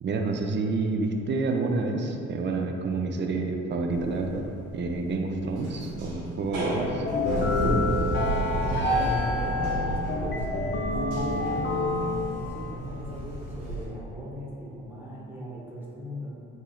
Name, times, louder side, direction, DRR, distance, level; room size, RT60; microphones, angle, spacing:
voice 1, 0.0-4.5 4.7-7.0, right 3 dB, 35° right, 3 dB, 0.4 m, -28 dB
sound 1, 3.9-4.4 4.9-5.0 5.4-13.8, equal, 85° right, 1.0 m, -30 dB
sound 2, 7.0-12.7, left 2 dB, 35° left, 0.4 m, -29 dB
voice 2, 8.6-16.3, equal, 5° right, -6 dB, 1.0 m, -39 dB
4.3 x 2.7 x 2.3 m, 2.7 s
hypercardioid pair, 45°, 35 cm